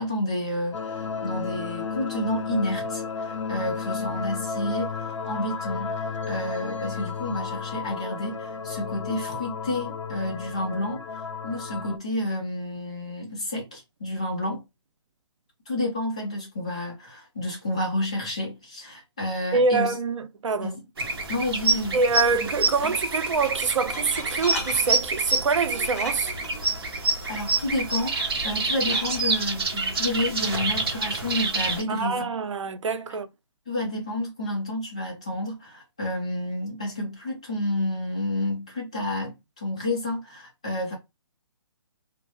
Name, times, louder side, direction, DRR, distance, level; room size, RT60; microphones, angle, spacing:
voice 1, 0.0-14.6 15.7-20.0 20.6-20.8 21.3-22.0 22.4-22.5 22.8-22.9 26.9-32.4 33.7-41.0, left 1 dB, 15° left, 0.4 m, -30 dB
sound 1, 0.7-12.0, left 5 dB, 90° left, 0.6 m, -33 dB
voice 2, 19.5-20.7 21.9-26.3 31.9-33.3, right 4 dB, 85° right, 0.5 m, -25 dB
sound 2, 21.0-31.8, right 3 dB, 55° right, 0.9 m, -27 dB
Glass, 21.7-29.4, left 1 dB, 30° left, 0.9 m, -40 dB
2.4 x 2.0 x 3.0 m
hypercardioid pair, 180°, 15 cm